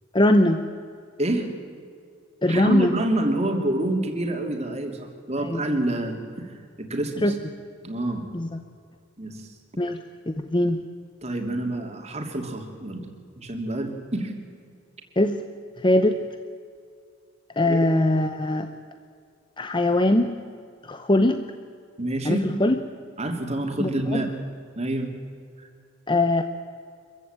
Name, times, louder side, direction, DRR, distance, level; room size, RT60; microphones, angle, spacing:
voice 1, 0.1-0.6 2.4-2.9 5.4-5.6 7.2-7.4 8.3-8.5 9.8-10.8 15.2-15.4 15.8-16.2 17.6-18.7 19.6-20.4 20.8-21.4 22.2-22.8 23.8-24.2 26.1-26.4, left 1 dB, 25° left, 8 dB, 0.9 m, -21 dB
voice 2, 2.5-7.4 7.8-8.2 9.2-9.5 11.2-13.1 13.4-14.3 17.6-17.8 22.0-22.4 23.2-24.3 24.8-25.1 25.6-25.7, right 1 dB, 35° right, 3 dB, 3.0 m, -27 dB
25.5 x 15.0 x 9.0 m, 2.2 s
head